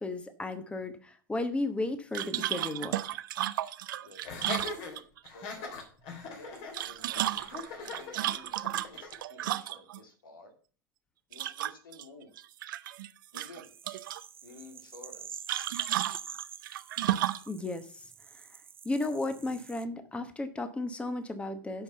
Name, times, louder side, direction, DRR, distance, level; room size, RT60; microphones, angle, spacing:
voice 1, 0.0-3.0 17.5-18.1 18.3-18.4 18.8-21.8, left 2 dB, 10° left, 10 dB, 1.1 m, -34 dB
sound 1, 2.1-5.3 6.6-10.0 11.3-12.0 12.4-13.1 13.3-14.2 15.5-17.5, right 13 dB, 75° right, 0.6 m, -33 dB
voice 2, 4.0-5.0 5.3-5.8 6.3-10.5 11.3-12.3 13.3-13.7 13.9-14.0 14.4-15.4, left 2 dB, 90° left, 5 dB, 2.4 m, -53 dB
Laughter, 4.2-9.2, left 4 dB, 50° left, 3.2 m, -41 dB
sound 2, 13.6-19.8, right 7 dB, 20° right, 0.5 m, -46 dB
7.9 x 5.4 x 6.9 m, 0.41 s
hypercardioid pair, 105°, 11 cm